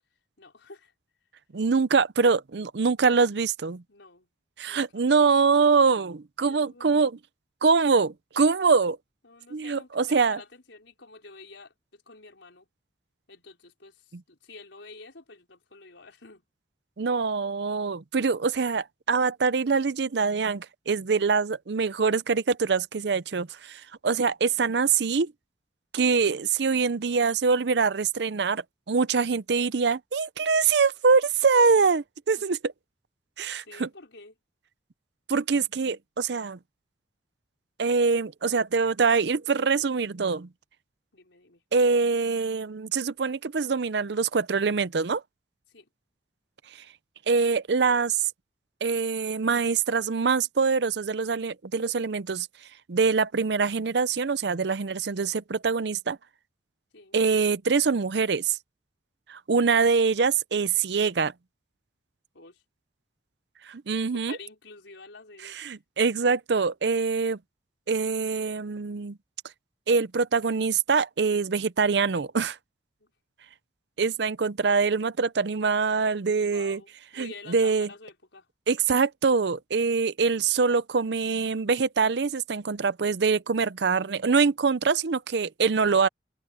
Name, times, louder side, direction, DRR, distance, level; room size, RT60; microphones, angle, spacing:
voice 1, 0.4-0.9 3.9-4.3 4.7-5.0 6.5-7.0 9.2-12.7 13.3-16.5 32.4-32.5 33.6-34.4 41.1-41.6 45.7-45.9 56.9-57.2 62.3-62.6 64.3-65.6 73.0-73.1 76.5-78.5, left 3 dB, 80° left, 4.7 m, -48 dB
voice 2, 1.5-3.8 4.6-7.1 7.6-9.0 9.5-10.4 17.0-25.3 25.9-32.6 33.4-33.9 35.3-36.6 37.8-40.5 41.7-45.2 46.7-46.8 47.3-48.3 48.8-52.5 52.9-56.2 57.1-58.6 59.3-61.3 63.6-64.4 65.6-67.4 67.9-69.2 69.9-72.6 74.0-76.8 77.2-77.9 78.7-86.1, right 5 dB, 65° right, 0.6 m, -24 dB
head